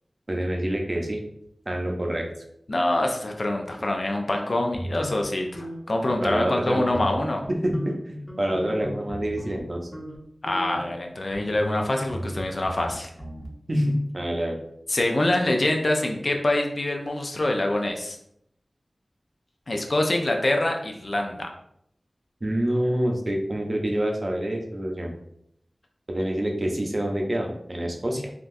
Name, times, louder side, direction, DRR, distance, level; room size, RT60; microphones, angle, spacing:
voice 1, 0.3-1.2 1.7-2.3 6.2-6.9 7.5-9.9 13.7-14.6 22.4-25.1 26.1-28.3, right 1 dB, 45° right, 2 dB, 0.6 m, -27 dB
voice 2, 2.7-7.4 10.4-13.1 14.9-18.2 19.7-21.5, left 1 dB, 60° left, 2 dB, 0.5 m, -25 dB
sound 1, 4.7-6.6 6.9-7.5 7.7-9.6 9.9-10.2 10.5-13.5, equal, 20° left, 0.8 m, -37 dB
3.6 x 2.3 x 2.6 m, 0.74 s
wide cardioid pair, 50°, 0 cm